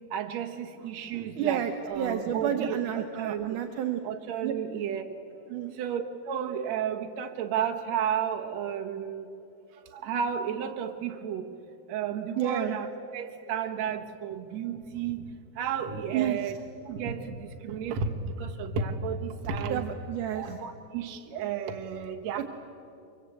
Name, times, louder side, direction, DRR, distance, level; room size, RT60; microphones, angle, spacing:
voice 1, 0.0-3.6 4.0-5.2 5.7-9.3 9.7-11.5 11.9-19.8 20.3-22.5, right 7 dB, 60° right, 3 dB, 2.0 m, -33 dB
voice 2, 1.4-4.0 4.4-4.5 5.5-5.7 12.4-12.7 16.1-16.5 19.7-20.5, right 9 dB, 75° right, 6 dB, 1.9 m, -30 dB
24.5 x 23.5 x 8.3 m, 2.7 s
omnidirectional pair, 4.6 m